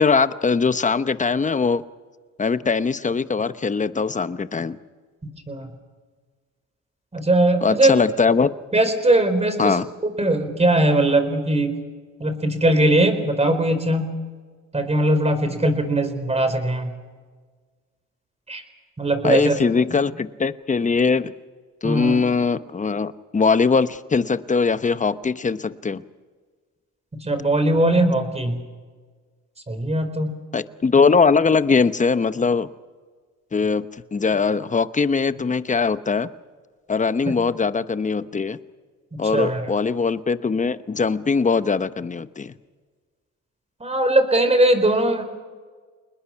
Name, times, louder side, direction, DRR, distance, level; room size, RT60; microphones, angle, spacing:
voice 1, 0.0-1.8 2.4-4.8 7.6-8.5 9.6-9.9 19.2-21.3 21.8-26.0 30.5-32.7 33.5-36.3 36.9-38.6 39.2-42.5, left 5 dB, 25° left, 13 dB, 0.9 m, -21 dB
voice 2, 7.1-7.9 8.7-9.8 10.0-11.7 12.2-14.1 14.7-16.9 18.5-18.6 19.0-19.5 19.9-20.0 21.8-22.2 27.1-28.6 29.7-30.3 39.3-39.7 43.8-45.2, right 1 dB, 20° right, 8 dB, 4.5 m, -20 dB
28.5 x 20.5 x 5.9 m, 1.5 s
cardioid pair, 90°, 30 cm